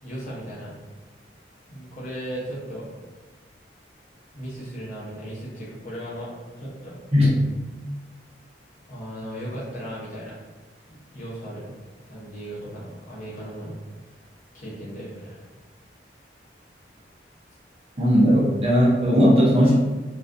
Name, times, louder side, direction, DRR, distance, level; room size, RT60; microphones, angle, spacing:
voice 1, 0.0-0.7 1.7-2.9 4.3-6.3 6.6-7.0 8.9-10.4 10.9-11.7 12.1-13.8 14.5-15.5, equal, 45° left, -8 dB, 0.8 m, -36 dB
voice 2, 18.0-19.7, equal, 30° right, -6 dB, 0.6 m, -17 dB
2.4 x 2.2 x 2.5 m, 1.3 s
head